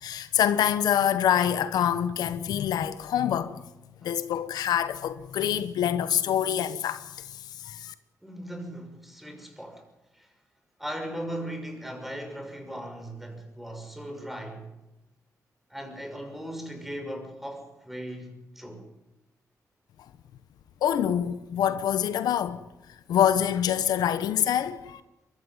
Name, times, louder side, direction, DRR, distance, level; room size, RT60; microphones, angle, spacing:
voice 1, 0.0-3.6 4.0-7.9 20.8-22.6 23.1-25.0, left 10 dB, 90° left, 1.0 m, -26 dB
voice 2, 8.2-9.8 10.1-10.3 10.8-14.7 15.7-18.9, equal, 5° right, 6.1 m, -38 dB
23.0 x 14.5 x 9.7 m
cardioid pair, 70°, 7 cm